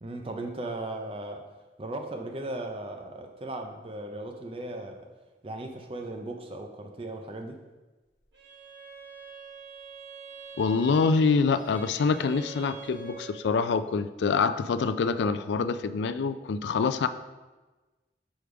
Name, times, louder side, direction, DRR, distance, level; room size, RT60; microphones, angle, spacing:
voice 1, 0.0-1.5 1.8-5.1 5.4-7.6, right 2 dB, 30° right, 4 dB, 0.5 m, -37 dB
Bowed string instrument, 8.3-13.5, right 5 dB, 75° right, 1.4 m, -46 dB
voice 2, 10.6-17.1, left 5 dB, 80° left, 11 dB, 0.3 m, -25 dB
6.2 x 3.4 x 4.9 m, 1.2 s
head